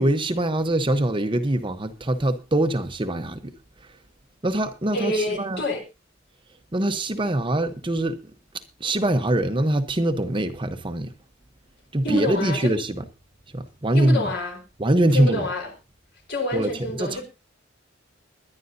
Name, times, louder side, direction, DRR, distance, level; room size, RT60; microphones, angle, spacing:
voice 1, 0.0-4.0 4.4-5.7 6.7-11.1 11.9-13.1 13.5-14.3 14.8-15.5 16.5-17.2, right 1 dB, 25° right, 0.9 m, -24 dB
voice 2, 4.9-5.8 12.0-12.7 13.9-14.6 15.1-15.7 16.3-17.3, left 2 dB, 60° left, 4.3 m, -27 dB
22.0 x 11.0 x 2.7 m
head